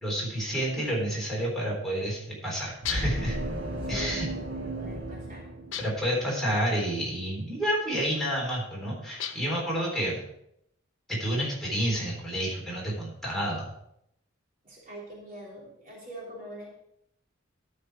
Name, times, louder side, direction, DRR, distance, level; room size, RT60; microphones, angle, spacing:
voice 1, 0.0-3.4 3.9-4.3 5.8-10.2 11.1-13.7, equal, ahead, -5 dB, 3.7 m, -29 dB
sound 1, 2.8-6.3, right 1 dB, 70° right, 1.6 m, -34 dB
sound 2, 2.9-3.3 5.7-6.2 9.2-9.7, left 10 dB, 80° left, 0.9 m, -36 dB
voice 2, 3.8-5.5 14.6-16.7, right 1 dB, 45° right, -4 dB, 3.4 m, -43 dB
12.5 x 5.8 x 4.7 m, 0.76 s
head